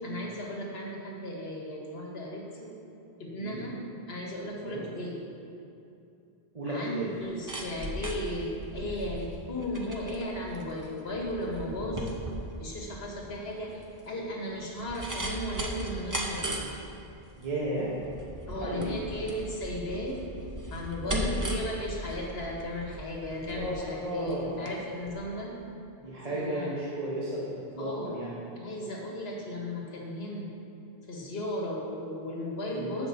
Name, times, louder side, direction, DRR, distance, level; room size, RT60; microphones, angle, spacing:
voice 1, 0.0-2.7 3.2-3.8 4.1-5.2 6.7-12.1 12.6-16.7 18.5-20.3 20.7-25.5 26.3-26.7 27.8-28.1 28.6-30.5 31.1-33.1, left 1 dB, 80° left, -1 dB, 1.4 m, -35 dB
voice 2, 6.5-7.1 17.3-17.9 18.5-18.9 21.0-21.2 23.5-24.6 26.0-28.4 32.7-32.9, right 1 dB, 40° right, -7 dB, 1.0 m, -34 dB
sound 1, 7.1-24.8 25.1-25.2, right 1 dB, 20° right, 0.6 m, -37 dB
14.5 x 5.6 x 2.7 m, 2.7 s
omnidirectional pair, 1.0 m